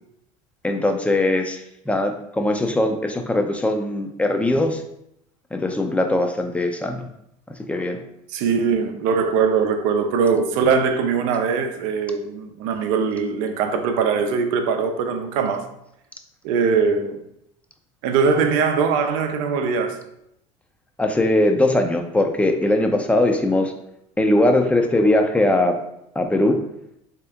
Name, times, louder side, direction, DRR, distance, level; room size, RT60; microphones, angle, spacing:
voice 1, 0.6-4.8 5.5-7.1 7.7-8.0 21.0-23.7 24.2-25.8 26.2-26.6, left 1 dB, 5° left, 0.5 m, -20 dB
voice 2, 8.3-15.7 16.4-17.2 18.0-20.0, right 5 dB, 70° right, 0.6 m, -21 dB
3.3 x 2.9 x 3.5 m
hypercardioid pair, 85°, 17 cm